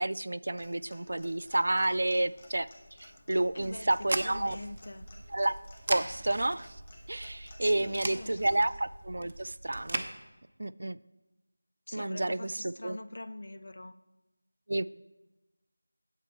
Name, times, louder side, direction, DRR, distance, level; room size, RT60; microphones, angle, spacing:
voice 1, 0.0-2.7 3.0-4.6 5.3-5.5 5.9-6.8 7.1-10.0 10.6-11.0 11.9-13.0 14.7-14.9, right 1 dB, 60° right, 17 dB, 0.3 m, -30 dB
Clock, 0.5-8.7, left 1 dB, 30° left, 1.6 m, -55 dB
voice 2, 3.5-5.1 7.6-8.6 11.9-13.9, left 2 dB, 55° left, 13 dB, 0.5 m, -44 dB
sound 1, 3.6-10.1, right 2 dB, 40° right, 0.7 m, -39 dB
9.0 x 8.3 x 4.1 m, 1.1 s
figure-of-eight pair, 170°, 0 cm